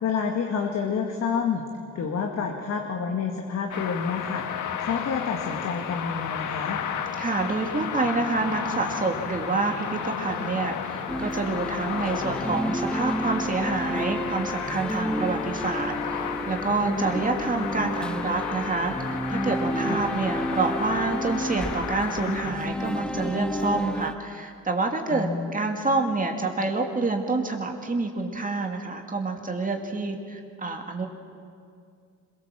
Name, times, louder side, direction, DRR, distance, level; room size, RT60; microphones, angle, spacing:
voice 1, 0.0-1.7 2.0-6.8 19.9-20.1 25.1-25.5, left 6 dB, 60° left, 2 dB, 2.0 m, -29 dB
sound 1, 3.7-22.5, left 8 dB, 75° left, 1.5 m, -33 dB
voice 2, 7.2-31.1, right 3 dB, 25° right, 3 dB, 2.2 m, -28 dB
sound 2, 11.1-24.1, equal, 5° left, 0.7 m, -31 dB
23.0 x 21.5 x 7.5 m, 2.4 s
cardioid pair, 90°, 30 cm